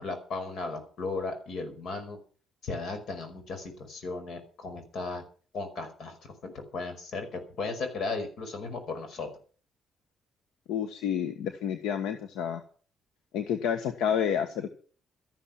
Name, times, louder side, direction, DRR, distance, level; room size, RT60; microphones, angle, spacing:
voice 1, 0.0-2.2 2.6-5.2 5.5-9.3, left 3 dB, 65° left, 7 dB, 5.1 m, -36 dB
voice 2, 10.7-12.6 13.3-14.7, left 8 dB, 90° left, 9 dB, 1.3 m, -29 dB
13.0 x 11.5 x 7.3 m, 0.42 s
cardioid pair, 90°, 0 cm